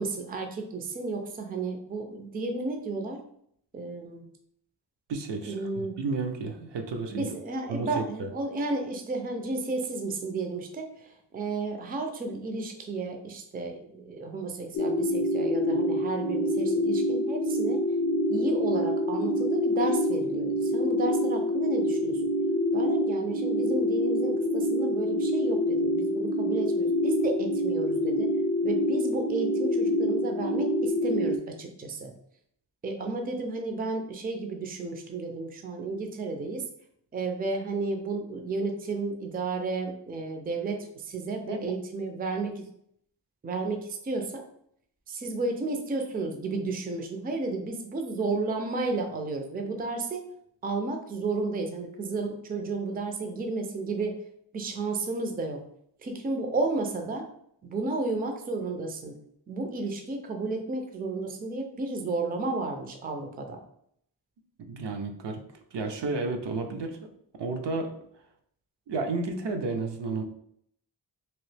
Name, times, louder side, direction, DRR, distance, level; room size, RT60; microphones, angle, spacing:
voice 1, 0.0-3.2 3.7-4.2 5.4-6.0 7.1-17.8 18.3-22.2 22.7-28.3 28.6-32.1 32.8-36.6 37.1-42.6 43.4-44.4 45.1-50.2 50.6-54.2 54.5-55.6 56.0-57.3 57.6-59.1 59.5-63.6, right 3 dB, 20° right, 4 dB, 0.4 m, -32 dB
voice 2, 5.1-7.3 7.7-8.3 41.5-41.6 64.7-65.4 65.7-67.0 67.4-67.9 68.9-70.2, right 3 dB, 70° right, 4 dB, 0.6 m, -32 dB
sound 1, 14.7-31.4, left 1 dB, 45° left, 0.4 m, -26 dB
3.0 x 2.7 x 3.2 m, 0.68 s
wide cardioid pair, 140°, 44 cm